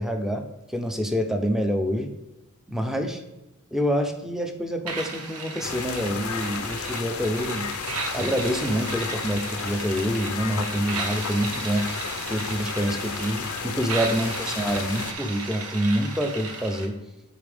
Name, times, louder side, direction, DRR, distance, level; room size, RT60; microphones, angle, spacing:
voice 1, 0.0-2.1 2.7-3.2 3.7-7.8 8.1-11.9 12.3-17.0, equal, ahead, 5 dB, 0.7 m, -27 dB
sound 1, 4.9-16.9, right 4 dB, 90° right, 1.2 m, -35 dB
sound 2, 5.6-15.1, left 7 dB, 75° left, 0.6 m, -33 dB
8.5 x 4.7 x 3.5 m, 1.0 s
head